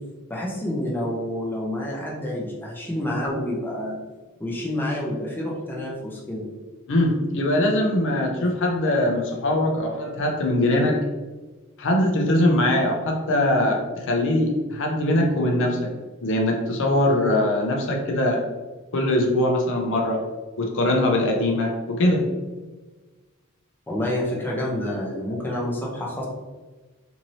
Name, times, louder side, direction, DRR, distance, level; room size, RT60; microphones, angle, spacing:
voice 1, 0.3-4.0 4.4-6.4 23.9-26.3, left 1 dB, 10° left, -3 dB, 0.5 m, -28 dB
voice 2, 6.9-11.0 11.8-15.9 16.2-18.4 18.9-20.2 20.6-22.2, left 1 dB, 60° left, 1 dB, 0.5 m, -22 dB
2.7 x 2.7 x 2.9 m, 1.3 s
head